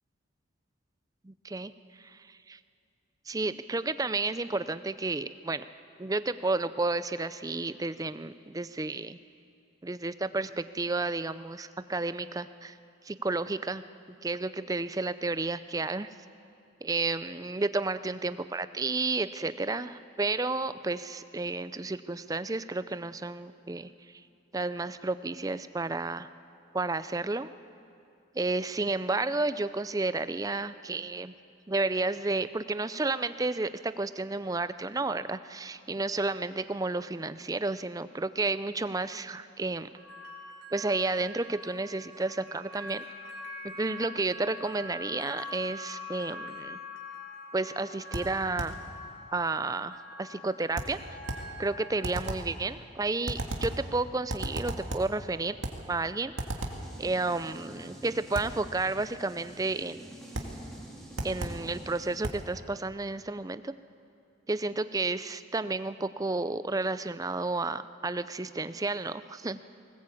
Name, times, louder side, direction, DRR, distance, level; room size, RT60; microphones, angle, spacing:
voice 1, 1.2-1.7 2.0-2.6 3.3-5.7 6.0-9.2 9.8-12.8 13.0-13.8 14.2-16.1 16.8-24.2 24.5-26.3 26.7-27.5 28.3-31.3 31.7-39.9 40.7-43.1 43.6-46.8 47.5-48.7 49.3-51.0 51.6-55.6 55.9-56.3 57.0-60.0 61.2-63.7 64.5-69.6, right 3 dB, 20° right, 13 dB, 0.5 m, -31 dB
sound 1, 40.0-52.1, left 2 dB, 55° right, 3.9 m, -44 dB
sound 2, 48.1-48.9 50.8-51.6 52.0-52.6 53.3-53.9 54.3-55.2 55.6-55.9 56.4-56.9 58.3-58.6 60.3-60.6 61.2-61.7 62.2-62.5, right 1 dB, 75° right, 2.1 m, -35 dB
sound 3, 56.7-62.2, right 1 dB, ahead, 3.3 m, -48 dB
19.5 x 19.0 x 8.5 m, 2.5 s
head